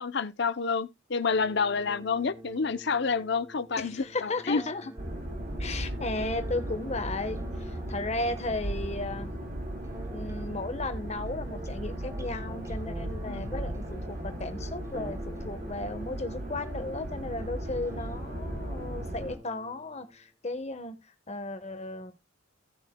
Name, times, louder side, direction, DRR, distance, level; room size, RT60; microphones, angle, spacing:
voice 1, 0.0-4.6 13.3-13.4, left 5 dB, 60° left, 0.7 m, -29 dB
sound 1, 1.3-20.2, right 1 dB, 15° right, 0.8 m, -47 dB
voice 2, 3.8-4.9 5.6-9.4 9.9-21.0 21.3-22.1, left 2 dB, 35° left, 1.3 m, -35 dB
sound 2, 5.0-19.4, right 1 dB, 45° right, 3.3 m, -36 dB
16.5 x 6.3 x 2.3 m
head